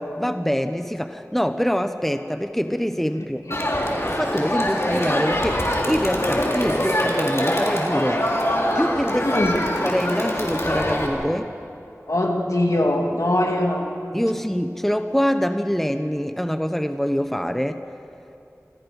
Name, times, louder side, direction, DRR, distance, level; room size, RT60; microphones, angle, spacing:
voice 1, 0.2-3.4 4.0-8.3 8.7-9.4 9.8-11.5 14.1-17.8, equal, 5° left, 8 dB, 0.9 m, -24 dB
Crowd, 3.5-11.1, equal, 50° left, 3.7 m, -23 dB
voice 2, 9.2-9.7 12.1-13.9, left 1 dB, 70° left, 0 dB, 2.8 m, -21 dB
26.5 x 26.5 x 5.4 m, 2.6 s
wide cardioid pair, 40°, 6 cm